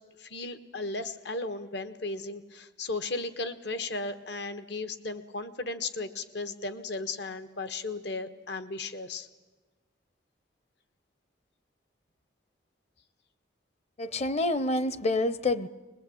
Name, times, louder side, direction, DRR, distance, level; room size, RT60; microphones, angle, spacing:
voice 1, 0.2-9.3, left 3 dB, 70° left, 11 dB, 1.4 m, -35 dB
voice 2, 14.0-15.7, left 2 dB, 40° left, 16 dB, 0.9 m, -27 dB
22.5 x 21.0 x 8.6 m, 1.2 s
head